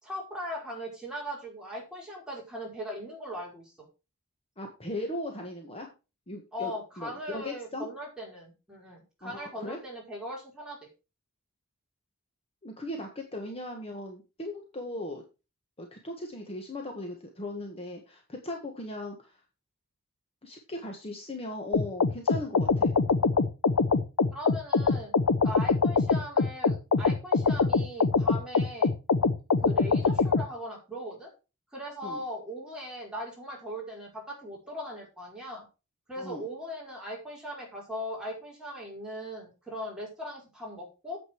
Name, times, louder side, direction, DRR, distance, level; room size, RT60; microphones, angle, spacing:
voice 1, 0.0-3.9 6.5-10.9 24.3-25.1 25.4-28.9 29.6-31.3 31.7-35.7 36.1-41.2, equal, 5° right, -3 dB, 5.2 m, -39 dB
voice 2, 4.6-5.9 6.3-7.9 9.2-9.8 12.6-15.2 15.8-19.4 20.4-22.9 32.0-32.2 36.2-36.5, left 1 dB, 25° left, 2 dB, 1.6 m, -38 dB
sound 1, 21.7-30.5, left 4 dB, 85° left, 0.7 m, -24 dB
9.5 x 7.9 x 4.6 m, 0.30 s
head